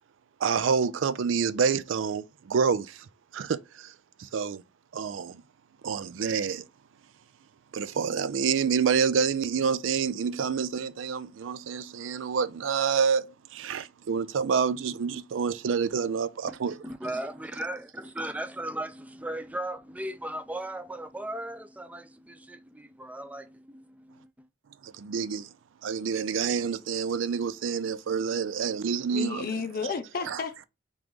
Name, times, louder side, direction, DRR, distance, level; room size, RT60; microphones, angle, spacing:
voice 1, 0.4-3.0 3.3-3.9 4.2-4.6 4.9-5.4 5.8-6.6 7.7-13.3 13.5-16.8 24.8-25.5 25.8-29.5, right 6 dB, 85° right, 0.4 m, -28 dB
voice 2, 16.5-24.5, right 1 dB, 10° right, 0.4 m, -37 dB
voice 3, 29.1-30.7, left 5 dB, 50° left, 0.6 m, -32 dB
3.8 x 3.1 x 3.4 m
head